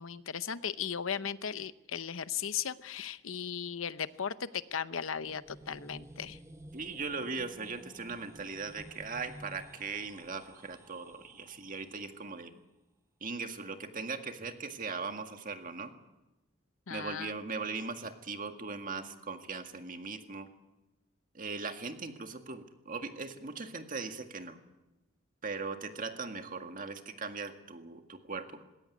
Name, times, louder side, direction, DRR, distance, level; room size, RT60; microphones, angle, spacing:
voice 1, 0.0-6.4 16.9-17.3, left 7 dB, 85° left, 14 dB, 0.8 m, -37 dB
sound 1, 5.1-12.0, right 1 dB, 15° right, 0.8 m, -53 dB
voice 2, 6.7-12.5 13.2-15.9 16.9-20.5 21.3-24.6 25.4-28.7, right 4 dB, 45° right, 6 dB, 1.9 m, -39 dB
20.5 x 17.5 x 9.8 m, 1.0 s
head